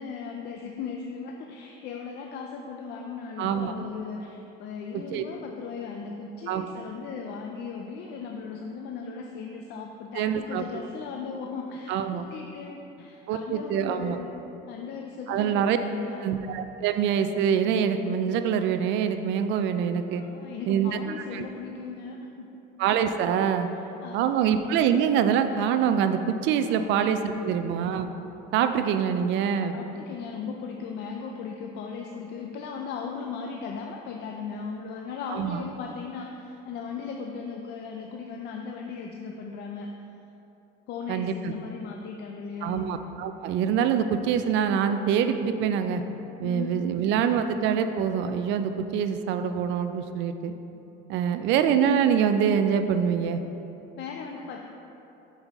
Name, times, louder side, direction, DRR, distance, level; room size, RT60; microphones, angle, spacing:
voice 1, 0.0-14.3 14.7-16.4 20.2-22.6 23.7-24.4 26.7-27.6 29.7-40.0 40.9-42.9 46.4-46.8 54.0-54.7, left 5 dB, 55° left, 2 dB, 0.4 m, -37 dB
voice 2, 3.4-3.7 4.9-5.2 6.5-6.7 10.1-10.6 11.9-12.3 13.3-14.2 15.3-15.8 16.2-20.2 20.7-21.0 21.3-21.4 22.8-23.7 24.1-28.1 28.5-29.8 35.3-35.6 41.1-41.5 42.6-46.0 46.4-50.5 51.1-53.4, right 8 dB, 60° right, 9 dB, 0.4 m, -25 dB
5.6 x 5.3 x 3.5 m, 2.9 s
cardioid pair, 125°, 21 cm